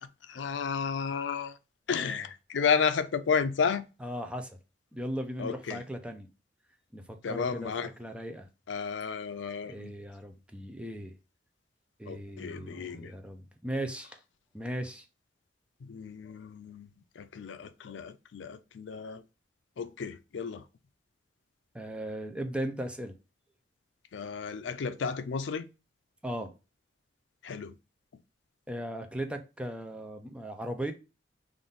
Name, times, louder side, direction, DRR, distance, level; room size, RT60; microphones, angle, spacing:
voice 1, 0.0-1.6 1.9-3.9 5.4-5.8 7.2-7.9 8.7-9.9 12.1-13.1 15.8-19.2 19.8-20.6 24.1-25.7 27.4-27.7, left 6 dB, 80° left, 0.4 m, -32 dB
voice 2, 4.0-4.6 4.9-6.3 6.9-8.5 9.6-11.2 12.0-14.2 14.5-15.0 21.7-23.1 26.2-26.5 28.7-30.9, right 1 dB, 5° right, 0.5 m, -37 dB
3.6 x 2.6 x 3.8 m
head